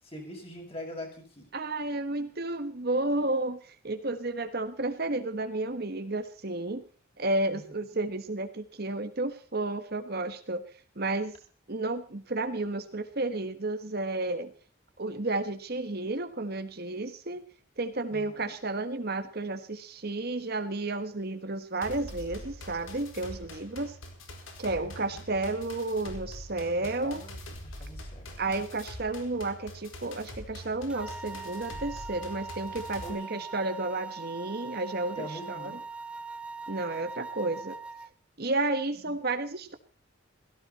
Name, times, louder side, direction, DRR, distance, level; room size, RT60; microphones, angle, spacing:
voice 1, 0.0-1.5 7.5-7.8 18.1-18.6 24.8-25.2 26.8-27.4 27.6-28.7 33.0-33.4 35.2-35.8 38.9-39.1, left 1 dB, 30° left, 2 dB, 7.1 m, -44 dB
voice 2, 1.5-6.8 7.2-10.7 11.0-11.3 11.7-14.5 15.0-17.4 17.8-24.0 24.6-27.2 28.4-35.8 36.7-37.8 38.4-39.7, right 2 dB, 50° right, 8 dB, 1.4 m, -32 dB
sound 1, 21.8-33.1, left 1 dB, 75° left, 4.5 m, -44 dB
sound 2, 30.9-38.1, right 4 dB, 5° right, 0.7 m, -41 dB
17.0 x 17.0 x 4.2 m, 0.41 s
head